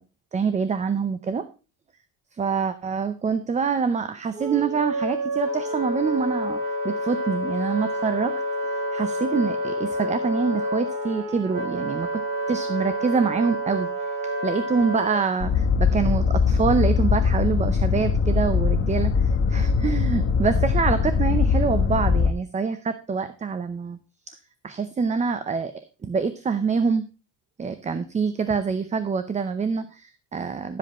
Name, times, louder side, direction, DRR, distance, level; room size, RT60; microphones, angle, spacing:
voice 1, 0.3-1.5 2.3-8.4 8.9-12.2 12.5-13.9 14.2-24.0 24.3-24.4 24.6-25.7 26.0-27.1 27.6-30.8, right 5 dB, 15° right, 11 dB, 0.6 m, -25 dB
Wind instrument woodwind instrument, 4.3-15.2, equal, 45° right, 3.8 m, -28 dB
sound 1, 15.4-22.3, left 5 dB, 30° left, 1.0 m, -21 dB
12.0 x 7.7 x 4.2 m, 0.33 s
cardioid pair, 155°, 42 cm